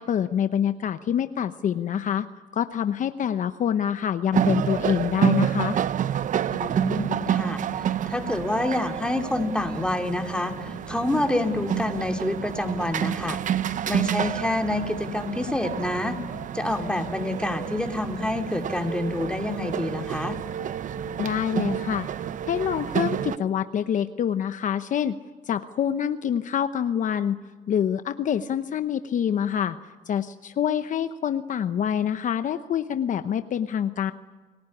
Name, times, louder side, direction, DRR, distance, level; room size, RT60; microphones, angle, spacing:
voice 1, 0.0-2.3 2.5-5.8 21.2-22.1 22.5-25.2 25.5-27.4 27.7-29.8 30.1-34.1, left 9 dB, 50° left, 10 dB, 0.9 m, -26 dB
sound 1, 4.3-23.4, right 9 dB, 50° right, 0.8 m, -29 dB
voice 2, 6.5-7.6 8.1-13.4 13.9-16.2 16.5-20.4, left 1 dB, 5° left, 4 dB, 2.8 m, -27 dB
30.0 x 19.0 x 9.8 m, 1.3 s
cardioid pair, 110°, 17 cm